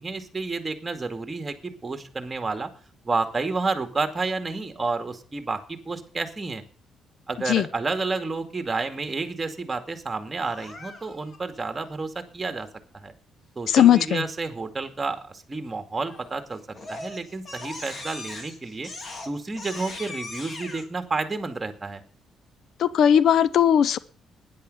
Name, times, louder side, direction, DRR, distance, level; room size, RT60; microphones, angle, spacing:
voice 1, 0.0-2.7 3.0-6.6 7.3-12.7 12.9-13.1 13.6-16.6 16.9-18.9 19.2-22.0, right 3 dB, 25° right, 7 dB, 2.2 m, -30 dB
Crying sobbing, 10.4-11.4 16.0-16.4 16.7-20.8, left 2 dB, 40° left, 3.0 m, -39 dB
voice 2, 13.7-14.2 22.8-24.0, left 9 dB, 70° left, 18 dB, 0.5 m, -18 dB
12.5 x 10.5 x 5.5 m, 0.43 s
cardioid pair, 90°, 0 cm